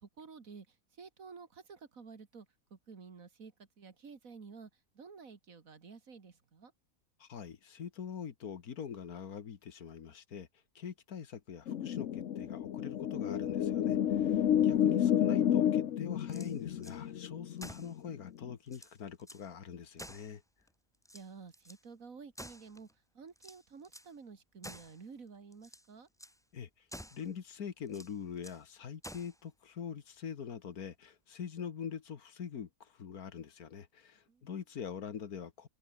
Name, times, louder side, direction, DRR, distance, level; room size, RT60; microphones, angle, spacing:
voice 1, 0.0-0.7 1.0-2.5 2.7-4.7 4.9-6.7 21.1-22.9 23.1-26.1 34.3-34.5, right 5 dB, 65° right, 2.5 m, -51 dB
voice 2, 7.2-10.5 10.8-20.4 26.5-26.7 27.1-35.7, left 7 dB, 90° left, 1.9 m, -44 dB
sound 1, 11.7-18.5, left 10 dB, 60° left, 1.1 m, -30 dB
sound 2, 16.2-17.0 17.6-18.0 18.4-18.5 18.7-19.5 20.0-20.7 21.0-21.8 22.3-22.9 23.4-24.1 24.6-25.0 25.5-25.9 26.2-26.4 26.9-27.3 27.9-28.6 29.0-29.4, equal, ahead, 2.8 m, -50 dB
omnidirectional pair, 1.5 m